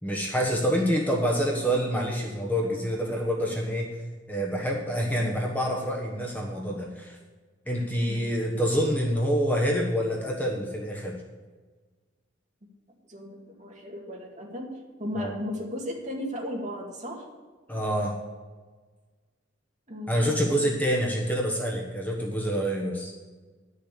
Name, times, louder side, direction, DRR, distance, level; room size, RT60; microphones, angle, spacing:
voice 1, 0.0-4.0 4.3-7.2 7.7-11.2 15.2-15.3 17.7-18.1 20.1-23.1, equal, 10° left, -1 dB, 1.2 m, -27 dB
voice 2, 13.1-14.7 15.0-17.3 19.9-20.7, left 1 dB, 40° right, 0 dB, 2.1 m, -36 dB
10.5 x 6.7 x 8.4 m, 1.4 s
head